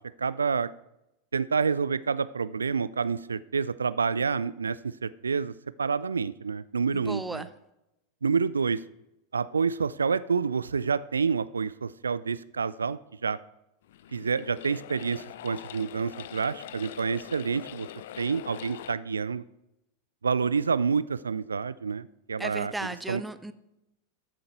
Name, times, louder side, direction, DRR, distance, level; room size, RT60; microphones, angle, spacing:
voice 1, 0.2-0.7 1.3-5.5 5.8-7.5 8.2-8.8 9.3-13.4 14.1-17.9 18.2-19.4 20.2-23.2, right 5 dB, 75° right, 18 dB, 0.3 m, -28 dB
voice 2, 6.9-7.5 22.4-23.5, right 2 dB, 5° right, 12 dB, 0.7 m, -35 dB
sound 1, 13.8-19.0, left 12 dB, 55° left, 0.4 m, -43 dB
13.0 x 7.7 x 4.5 m, 0.89 s
figure-of-eight pair, 90°, 0 cm